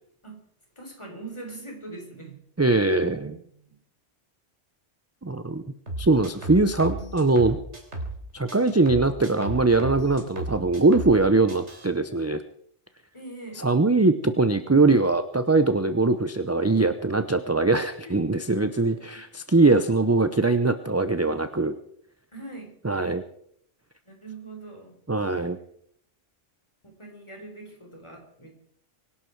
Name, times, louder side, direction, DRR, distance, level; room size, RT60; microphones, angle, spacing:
voice 1, 0.8-2.4 3.2-3.8 13.1-13.7 18.0-18.1 18.7-18.8 22.3-22.7 24.0-25.0 26.8-28.5, right 2 dB, 25° left, 2 dB, 4.0 m, -42 dB
voice 2, 2.6-3.3 5.2-5.6 6.0-7.6 8.3-12.4 13.6-21.7 22.8-23.2 25.1-25.6, right 3 dB, 20° right, 10 dB, 0.5 m, -22 dB
sound 1, 5.9-8.2 8.5-11.2 11.5-11.9, right 2 dB, 65° right, 3.9 m, -34 dB
24.5 x 11.5 x 4.6 m, 0.69 s
omnidirectional pair, 1.3 m